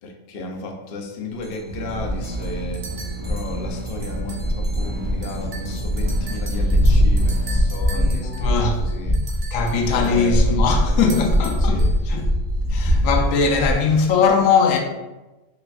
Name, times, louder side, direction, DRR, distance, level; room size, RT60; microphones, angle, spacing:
voice 1, 0.0-2.8 3.2-9.2 9.9-11.9, left 2 dB, 60° left, 0.6 m, -34 dB
sound 1, 1.4-1.6 1.9-13.7, equal, 5° left, 0.5 m, -22 dB
sound 2, 1.7-7.6, right 3 dB, 85° right, 1.5 m, -32 dB
sound 3, 2.2-2.3 2.7-3.2 4.0-4.5 4.8-4.9 5.2-10.2 11.0-12.0, right 4 dB, 45° right, 0.7 m, -40 dB
voice 2, 7.9-8.8 9.5-12.3 12.7-14.8, left 5 dB, 75° left, 1.0 m, -20 dB
6.6 x 2.4 x 2.4 m
omnidirectional pair, 1.5 m